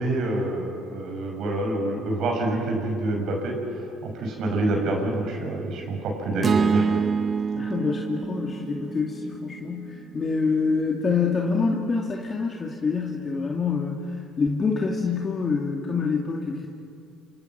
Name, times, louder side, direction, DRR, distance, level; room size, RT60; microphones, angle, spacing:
voice 1, 0.0-3.6 4.0-6.9, right 2 dB, 60° right, 2 dB, 6.5 m, -27 dB
sound 1, 6.4-10.7, right 6 dB, 40° right, 0.8 m, -27 dB
voice 2, 7.6-16.7, left 4 dB, 35° left, -1 dB, 2.7 m, -26 dB
27.5 x 27.0 x 6.0 m, 2.5 s
hypercardioid pair, 65°, 0 cm